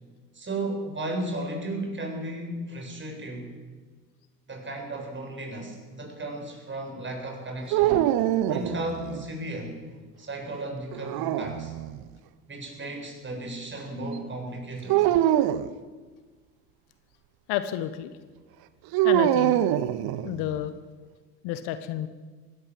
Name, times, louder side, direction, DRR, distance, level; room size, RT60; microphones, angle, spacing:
voice 1, 0.3-3.5 4.5-8.0 8.5-9.8 10.2-11.7 12.5-15.0, right 1 dB, 25° right, 2 dB, 7.6 m, -34 dB
sound 1, 7.7-9.3 10.9-12.0 14.9-15.7 18.9-20.6, right 13 dB, 50° right, 1.2 m, -24 dB
voice 2, 17.5-18.1 19.0-19.7 20.2-20.7 21.4-22.1, left 11 dB, 60° left, 11 dB, 1.4 m, -30 dB
21.5 x 17.5 x 7.8 m, 1.4 s
hypercardioid pair, 70°, 45 cm